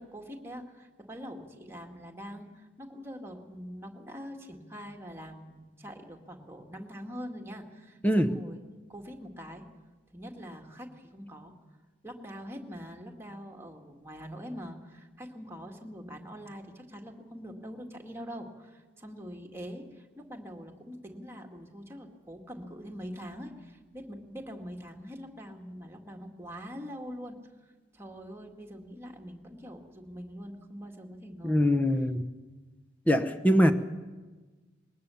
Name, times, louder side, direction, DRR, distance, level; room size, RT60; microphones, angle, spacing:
voice 1, 0.0-8.6 8.9-9.7 10.1-11.5 12.0-27.4 27.9-31.7, equal, 15° right, 1 dB, 2.0 m, -44 dB
voice 2, 8.0-8.4 31.4-32.2 33.1-33.7, equal, 10° left, 8 dB, 0.9 m, -23 dB
21.0 x 19.0 x 7.1 m, 1.3 s
head